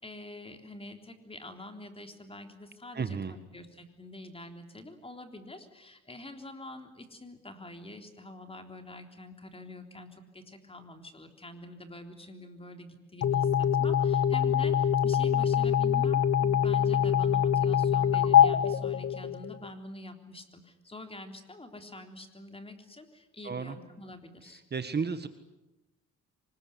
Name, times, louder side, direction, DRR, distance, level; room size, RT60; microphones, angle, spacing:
voice 1, 0.0-24.6, left 1 dB, 20° left, 6 dB, 3.7 m, -46 dB
voice 2, 2.9-3.3 23.4-23.8 24.7-25.3, right 5 dB, 35° right, 10 dB, 1.6 m, -32 dB
sound 1, 13.2-19.7, left 8 dB, 55° left, 1.3 m, -24 dB
25.0 x 20.5 x 9.7 m, 0.95 s
cardioid pair, 90°, 30 cm